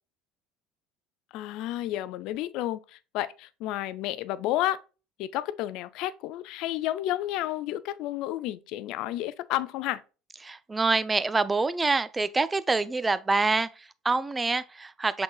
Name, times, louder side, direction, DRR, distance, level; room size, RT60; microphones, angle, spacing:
voice 1, 1.3-4.8 5.2-10.0, left 14 dB, 60° left, 0.3 m, -31 dB
voice 2, 10.4-15.2, right 3 dB, 20° right, 0.4 m, -26 dB
5.8 x 3.8 x 2.3 m
hypercardioid pair, 70°, 0 cm